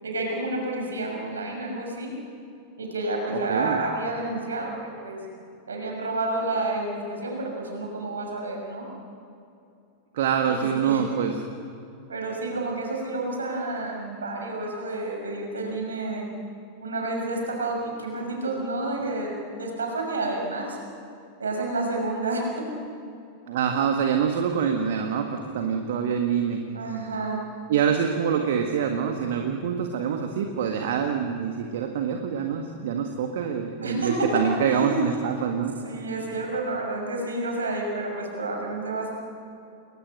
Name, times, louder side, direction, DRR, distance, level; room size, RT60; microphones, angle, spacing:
voice 1, 0.0-2.1 2.8-5.2 5.7-8.9 10.5-11.2 12.1-16.3 16.8-19.3 19.6-20.8 21.4-22.7 26.7-27.4 33.8-35.0 35.8-39.1, right 2 dB, 70° right, 1 dB, 6.3 m, -30 dB
voice 2, 3.3-3.8 10.1-11.3 23.5-26.6 27.7-35.8, right 7 dB, 55° right, 4 dB, 1.8 m, -25 dB
29.0 x 21.5 x 6.7 m, 2.6 s
figure-of-eight pair, 90°, 0 cm